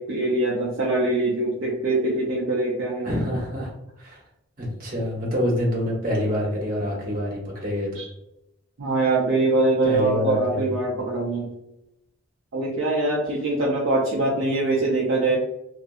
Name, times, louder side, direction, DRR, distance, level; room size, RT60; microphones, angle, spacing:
voice 1, 0.0-3.1 8.0-8.1 8.8-11.5 12.5-15.4, right 2 dB, 60° right, -4 dB, 0.5 m, -23 dB
voice 2, 3.0-3.7 4.0-4.2 4.6-7.9 9.8-10.8, equal, 45° right, -3 dB, 0.9 m, -26 dB
2.6 x 2.5 x 2.2 m, 0.87 s
head